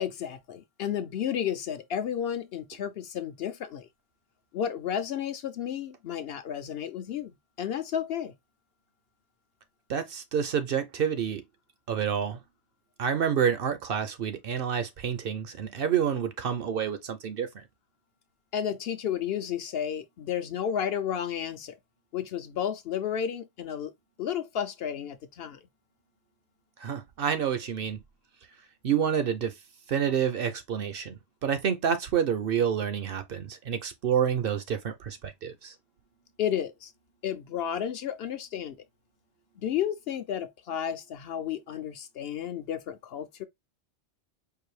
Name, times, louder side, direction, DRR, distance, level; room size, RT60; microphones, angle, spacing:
voice 1, 0.0-3.9 4.5-7.3 7.6-8.3 18.5-21.8 22.1-23.9 24.2-25.6 36.4-36.9 37.2-38.8 39.6-43.4, left 9 dB, 65° left, 0.7 m, -32 dB
voice 2, 9.9-11.4 11.9-12.4 13.0-17.6 26.8-28.0 28.8-29.5 29.9-35.7, right 8 dB, 60° right, 0.7 m, -28 dB
4.7 x 2.5 x 3.1 m
omnidirectional pair, 1.2 m